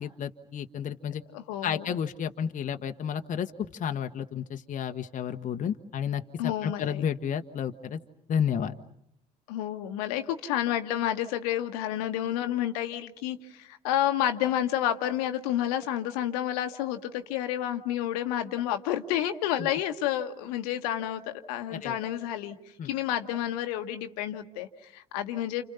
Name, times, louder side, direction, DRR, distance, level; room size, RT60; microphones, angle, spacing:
voice 1, 0.0-1.2 1.6-3.5 3.8-6.2 6.6-8.0 8.3-8.7 21.8-22.0 22.8-22.9, left 8 dB, 40° left, 6 dB, 1.2 m, -31 dB
voice 2, 1.3-1.9 6.4-7.1 9.5-22.6 22.8-25.6, left 11 dB, 65° left, 7 dB, 1.4 m, -30 dB
30.0 x 29.5 x 5.7 m, 0.71 s
figure-of-eight pair, 55°, 20 cm